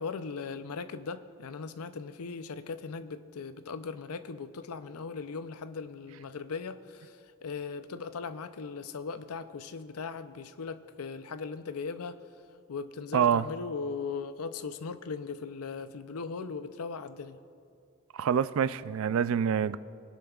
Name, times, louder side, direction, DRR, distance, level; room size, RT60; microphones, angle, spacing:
voice 1, 0.0-12.2 12.7-17.4, left 5 dB, 85° left, 0.5 m, -38 dB
voice 2, 13.1-13.4 18.1-19.8, right 8 dB, 65° right, 0.3 m, -26 dB
23.5 x 10.0 x 2.4 m
head